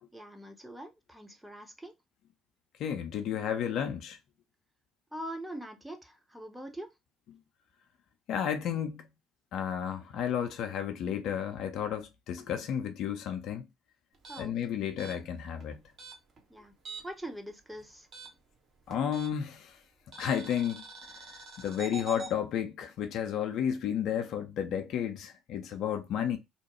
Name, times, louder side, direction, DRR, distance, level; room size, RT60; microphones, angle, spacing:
voice 1, 0.1-1.9 5.1-6.9 14.3-14.5 16.5-16.8 17.0-18.1, right 1 dB, 5° right, 0.7 m, -43 dB
voice 2, 2.8-4.2 8.3-9.1 9.5-13.7 14.4-15.8 18.9-19.8 20.2-20.8 21.6-26.4, left 9 dB, 55° left, 0.4 m, -32 dB
sound 1, 14.1-17.3 17.5-19.6 20.1-22.3, right 3 dB, 40° right, 0.9 m, -46 dB
2.8 x 2.1 x 2.9 m
figure-of-eight pair, 50°, 0 cm